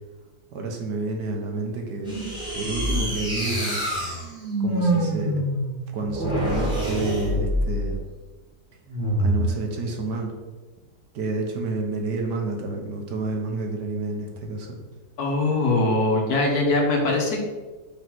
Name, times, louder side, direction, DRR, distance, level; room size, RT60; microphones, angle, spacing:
voice 1, 0.5-2.2 2.5-3.8 4.2-4.3 4.6-5.5 5.9-8.0 9.2-10.3 11.1-14.8, right 3 dB, 75° right, 2 dB, 1.6 m, -29 dB
sound 1, 2.0-8.0 8.9-9.5, right 1 dB, 5° right, 1.9 m, -25 dB
voice 2, 15.2-17.4, left 2 dB, 65° left, 0 dB, 1.7 m, -22 dB
5.1 x 4.2 x 6.0 m, 1.3 s
omnidirectional pair, 1.9 m